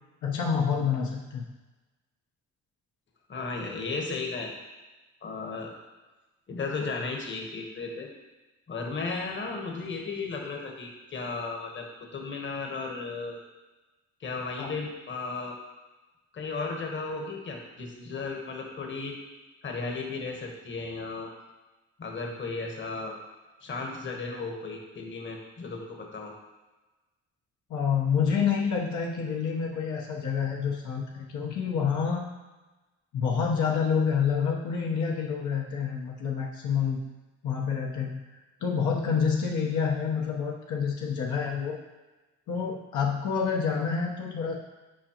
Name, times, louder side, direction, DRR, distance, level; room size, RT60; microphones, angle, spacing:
voice 1, 0.2-1.4 14.6-14.7 27.7-32.2 33.1-37.0 37.4-38.2 38.6-41.8 42.5-44.5, left 6 dB, 75° left, -2 dB, 1.0 m, -28 dB
voice 2, 3.3-4.5 5.2-5.7 6.5-8.1 8.7-11.9 12.1-13.4 14.2-15.6 16.3-19.2 19.6-21.3 22.0-23.2 23.6-26.3, left 4 dB, 40° left, 1 dB, 1.2 m, -35 dB
7.5 x 5.1 x 2.9 m, 1.1 s
cardioid pair, 90°, 30 cm